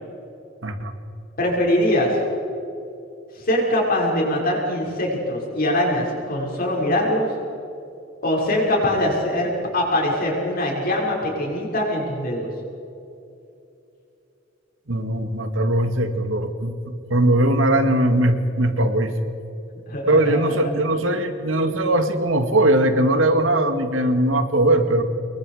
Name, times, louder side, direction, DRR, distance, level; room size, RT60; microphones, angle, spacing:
voice 1, 1.4-2.1 3.4-7.3 8.2-12.5 19.9-20.5, left 1 dB, 50° left, -2 dB, 6.2 m, -22 dB
voice 2, 14.9-16.7 17.1-19.1 20.1-25.0, right 1 dB, 85° right, 7 dB, 2.1 m, -20 dB
26.5 x 22.5 x 5.1 m, 2.8 s
head